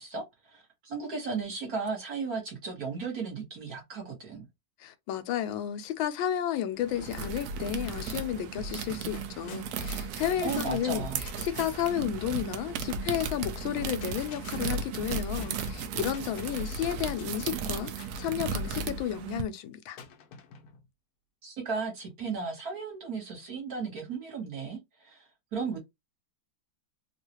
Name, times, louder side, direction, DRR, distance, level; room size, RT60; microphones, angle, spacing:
voice 1, 0.0-4.4 10.4-11.2 21.4-25.2 25.5-25.8, right 4 dB, 50° right, 1.6 m, -35 dB
voice 2, 4.8-20.0, left 10 dB, 80° left, 1.4 m, -32 dB
sound 1, 6.8-19.4, right 5 dB, 80° right, 0.8 m, -35 dB
sound 2, 8.4-8.6 8.8-12.0 13.6-16.8 17.2-18.2 20.0-20.9, left 6 dB, 65° left, 1.0 m, -49 dB
3.7 x 2.4 x 2.8 m
omnidirectional pair, 2.2 m